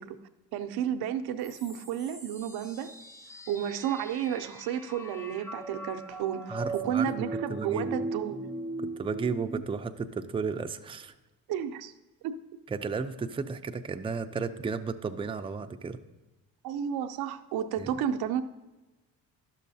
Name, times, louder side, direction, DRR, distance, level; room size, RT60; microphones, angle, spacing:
voice 1, 0.5-2.9 3.5-8.4 11.5-11.9 12.2-12.4 16.6-18.4, right 9 dB, 75° right, 8 dB, 0.7 m, -32 dB
sound 1, 1.4-9.6, right 2 dB, 10° left, 0.8 m, -39 dB
voice 2, 6.5-7.9 9.0-11.1 12.7-16.0 17.8-17.9, right 5 dB, 15° right, 8 dB, 0.4 m, -33 dB
11.5 x 6.5 x 2.7 m, 1.1 s
supercardioid pair, 75°, 38 cm